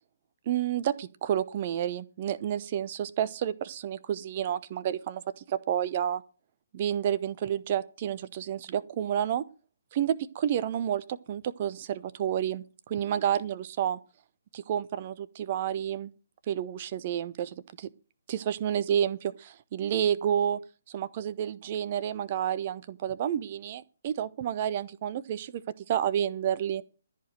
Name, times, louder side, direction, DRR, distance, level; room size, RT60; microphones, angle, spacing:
voice 1, 0.5-6.2 6.7-9.4 9.9-14.0 14.5-16.1 16.5-17.9 18.3-19.2 19.4-20.6 20.9-25.6 25.9-26.8, right 10 dB, 35° right, 0.9 m, -30 dB
14.0 x 5.1 x 9.1 m
figure-of-eight pair, 135°, 0 cm